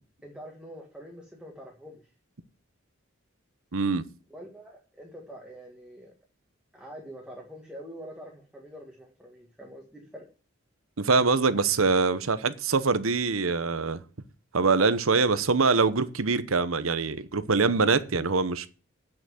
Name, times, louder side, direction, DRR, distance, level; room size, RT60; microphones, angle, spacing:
voice 1, 0.2-2.0 4.3-6.1 6.7-10.3, equal, 5° right, 1.8 m, -45 dB
voice 2, 3.7-4.0 11.0-14.0 14.5-18.7, right 4 dB, 80° right, 0.9 m, -24 dB
9.0 x 5.9 x 7.8 m
head